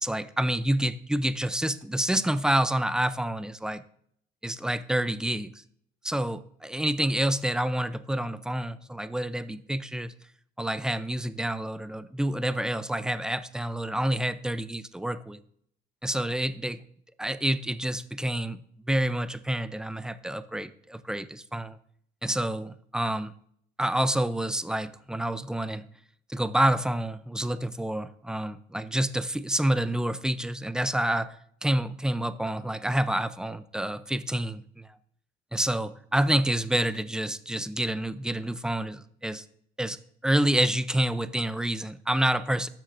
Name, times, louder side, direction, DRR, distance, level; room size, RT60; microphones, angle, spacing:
voice 1, 0.0-3.8 4.4-5.5 6.0-10.1 10.6-15.4 16.0-16.8 17.2-18.6 18.9-21.8 22.2-23.3 23.8-25.8 26.3-31.3 31.6-35.0 35.5-39.4 39.8-40.0 40.2-42.7, right 1 dB, 5° right, 13 dB, 0.5 m, -28 dB
12.5 x 7.3 x 2.6 m, 0.66 s
cardioid pair, 110°, 17 cm